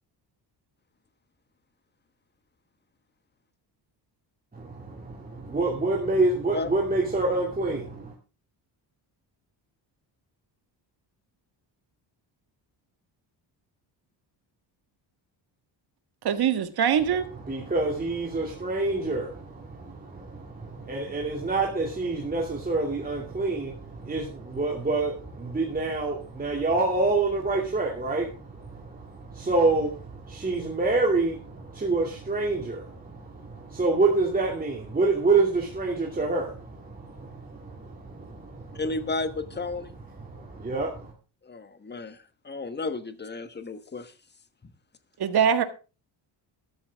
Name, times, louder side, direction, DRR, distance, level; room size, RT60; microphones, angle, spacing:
voice 1, 4.7-8.1 17.3-38.8 40.1-41.1, right 3 dB, 20° right, 2.6 m, -27 dB
voice 2, 16.2-17.3 45.2-45.6, right 8 dB, 55° right, 1.7 m, -22 dB
voice 3, 38.7-39.9 41.4-44.1 44.6-44.7, left 3 dB, 25° left, 1.3 m, -33 dB
13.0 x 12.5 x 3.6 m
cardioid pair, 125°, 44 cm